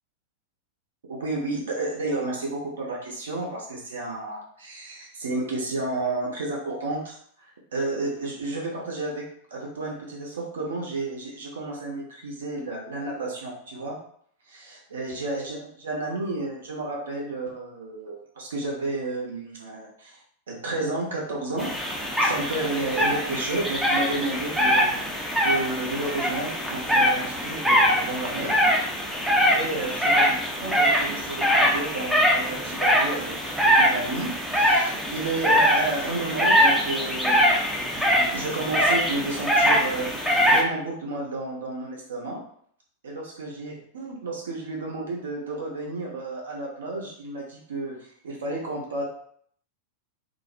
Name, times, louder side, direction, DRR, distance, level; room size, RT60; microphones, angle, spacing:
voice 1, 1.1-9.2 9.5-14.0 14.5-20.2 20.5-21.7 22.2-28.5 29.5-33.4 33.6-37.6 37.9-42.4 43.0-49.0, right 2 dB, 65° right, -1 dB, 0.7 m, -32 dB
sound 1, 21.6-40.6, equal, 5° right, 0.5 m, -23 dB
2.3 x 2.0 x 2.6 m, 0.63 s
figure-of-eight pair, 90°, 0 cm